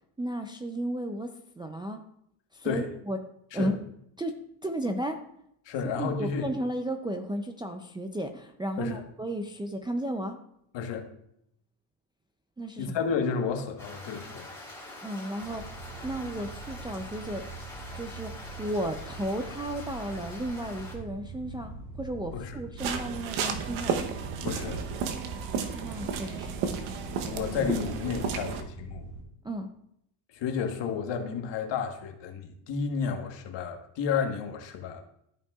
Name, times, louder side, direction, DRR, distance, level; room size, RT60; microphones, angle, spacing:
voice 1, 0.2-2.0 2.5-3.2 3.5-3.8 4.2-5.2 5.8-10.4 12.6-12.9 15.0-15.7 16.0-17.5 17.9-24.0 25.7-26.6 29.4-29.7, right 1 dB, 10° right, 4 dB, 0.4 m, -34 dB
voice 2, 5.6-6.5 8.8-9.0 10.7-11.1 12.8-14.5 22.3-22.5 24.4-24.8 27.2-29.1 30.3-35.0, left 6 dB, 60° left, 4 dB, 1.3 m, -31 dB
sound 1, 13.8-21.0, left 1 dB, 5° left, 2.6 m, -45 dB
sound 2, 15.4-29.2, right 4 dB, 35° right, 2.0 m, -43 dB
sound 3, 22.8-28.6, right 6 dB, 85° right, 1.0 m, -32 dB
13.0 x 5.4 x 2.3 m, 0.74 s
cardioid pair, 115°, 48 cm